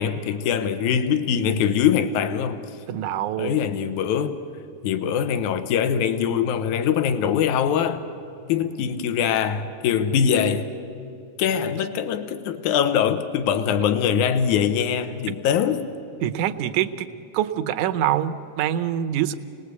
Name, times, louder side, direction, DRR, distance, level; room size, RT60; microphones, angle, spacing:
voice 1, 0.0-2.6 3.4-4.4 4.8-8.0 8.5-10.7 11.4-15.8, left 8 dB, 80° left, 2.5 m, -22 dB
voice 2, 2.9-3.6 16.2-17.1 17.3-19.3, right 11 dB, 80° right, 2.2 m, -25 dB
27.5 x 20.0 x 8.2 m
omnidirectional pair, 3.4 m